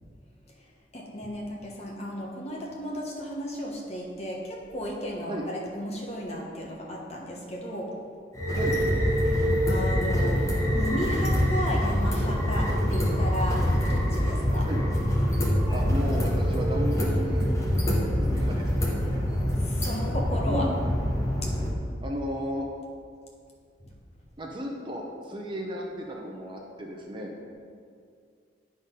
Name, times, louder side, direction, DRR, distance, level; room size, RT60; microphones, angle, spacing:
voice 1, 0.9-7.9 9.2-10.4 10.7-14.7 19.6-21.0 21.4-21.5 23.8-23.9, equal, 35° left, -2 dB, 1.2 m, -34 dB
sound 1, 8.3-21.7, equal, 15° left, 1.0 m, -25 dB
voice 2, 15.5-17.5 18.2-19.0 20.4-20.8 22.0-22.7 24.4-27.5, equal, 25° right, 0 dB, 0.7 m, -34 dB
9.2 x 4.0 x 5.3 m, 2.2 s
head